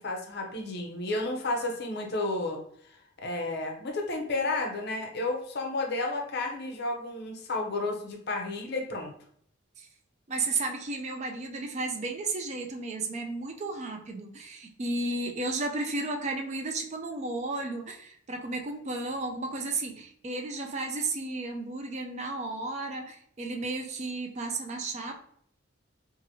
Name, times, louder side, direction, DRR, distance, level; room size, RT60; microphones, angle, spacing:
voice 1, 0.0-2.6 2.9-9.1, left 2 dB, 55° left, 2 dB, 0.6 m, -32 dB
voice 2, 10.3-25.2, right 3 dB, 35° right, 4 dB, 0.4 m, -33 dB
2.9 x 2.5 x 2.7 m, 0.65 s
head